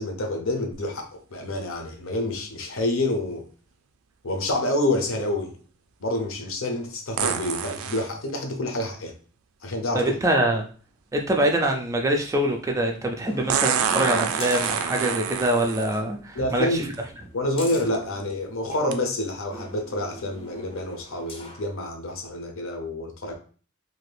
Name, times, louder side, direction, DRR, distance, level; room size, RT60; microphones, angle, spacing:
voice 1, 0.0-3.4 4.2-5.5 6.0-9.1 9.6-10.2 16.3-16.9 17.3-23.3, left 1 dB, 70° left, 4 dB, 0.7 m, -28 dB
sound 1, 0.7-0.8 7.2-8.1 10.1-10.2 13.5-16.0 16.9-17.0 17.7-18.0 18.9-19.0, right 7 dB, 90° right, 0.4 m, -27 dB
voice 2, 9.9-10.7 11.1-16.8, right 1 dB, 15° right, 3 dB, 0.3 m, -24 dB
sound 2, 13.2-15.5 15.9-16.0 16.4-18.9 19.5-21.7 22.2-22.3, left 1 dB, 25° left, 0.6 m, -41 dB
2.7 x 2.5 x 3.3 m, 0.41 s
head